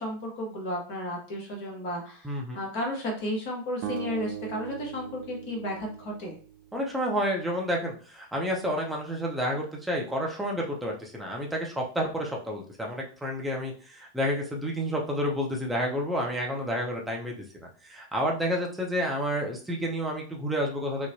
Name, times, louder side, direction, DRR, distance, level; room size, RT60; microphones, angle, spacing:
voice 1, 0.0-6.4, left 1 dB, 50° left, -1 dB, 1.1 m, -33 dB
voice 2, 2.2-2.6 6.7-17.4 17.8-21.1, equal, 5° right, -2 dB, 0.7 m, -30 dB
sound 1, 3.8-7.0, right 10 dB, 45° right, 0.3 m, -39 dB
3.6 x 2.0 x 2.7 m, 0.41 s
figure-of-eight pair, 90°, 0 cm